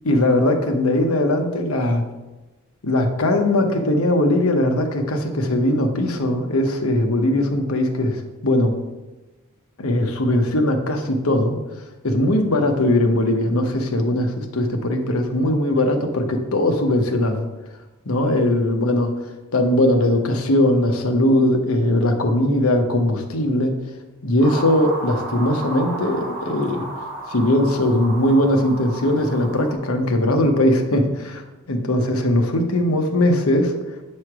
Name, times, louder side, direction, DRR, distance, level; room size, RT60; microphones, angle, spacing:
voice 1, 0.0-2.0 2.8-8.7 9.8-11.6 12.0-17.4 18.0-19.1 19.5-23.7 24.2-26.8 27.3-33.7, left 1 dB, 85° left, 4 dB, 1.0 m, -20 dB
sound 1, 24.4-29.7, right 2 dB, 45° right, 2.4 m, -33 dB
8.6 x 3.2 x 6.0 m, 1.1 s
head